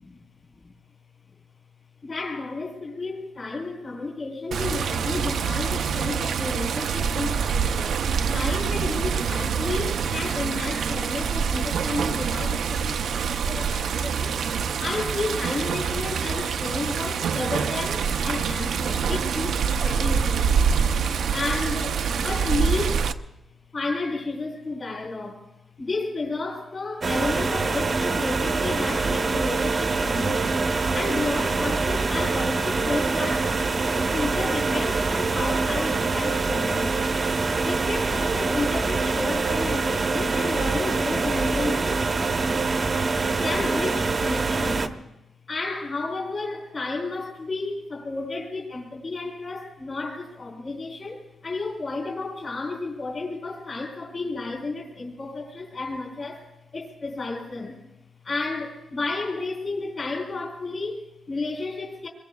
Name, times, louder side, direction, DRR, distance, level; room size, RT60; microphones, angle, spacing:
voice 1, 2.0-8.0 8.3-20.5 21.3-23.1 23.7-25.5 25.8-30.7 30.9-33.5 33.9-37.0 37.6-42.0 43.4-45.0 45.5-57.8 58.2-62.1, left 3 dB, 35° left, -1 dB, 4.0 m, -32 dB
Water, 4.5-23.1, right 6 dB, 80° right, 0.6 m, -25 dB
sound 1, 27.0-44.9, right 3 dB, 35° right, 0.9 m, -24 dB
27.0 x 22.0 x 2.3 m, 0.93 s
wide cardioid pair, 150°, 0 cm